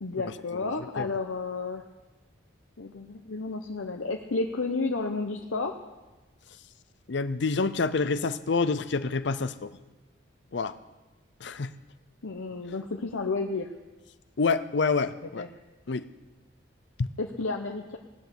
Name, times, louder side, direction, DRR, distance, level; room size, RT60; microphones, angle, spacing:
voice 1, 0.0-1.8 2.8-5.7 12.2-13.7 15.4-15.5 17.2-18.0, left 3 dB, 90° left, 2 dB, 0.9 m, -31 dB
voice 2, 7.1-9.7 10.5-10.7 11.4-11.7 14.4-15.4 15.9-16.1 17.0-17.1, left 4 dB, 60° left, 13 dB, 0.6 m, -27 dB
18.0 x 8.1 x 7.0 m, 1.2 s
head